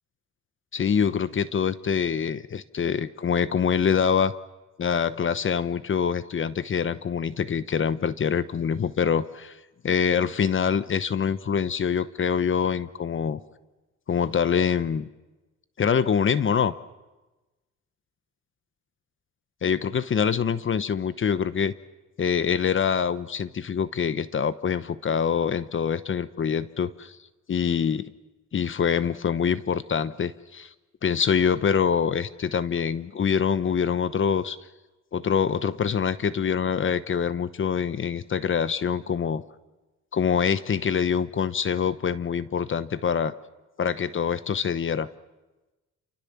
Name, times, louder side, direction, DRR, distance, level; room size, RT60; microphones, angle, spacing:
voice 1, 0.7-4.3 4.8-9.6 9.8-13.4 14.1-15.1 15.8-16.7 19.6-21.7 22.2-27.2 27.5-28.1 28.5-30.7 31.0-34.6 35.1-39.4 40.1-43.3 43.8-45.1, left 7 dB, 40° left, 14 dB, 1.0 m, -25 dB
29.0 x 24.5 x 7.2 m, 1.1 s
cardioid pair, 90°, 30 cm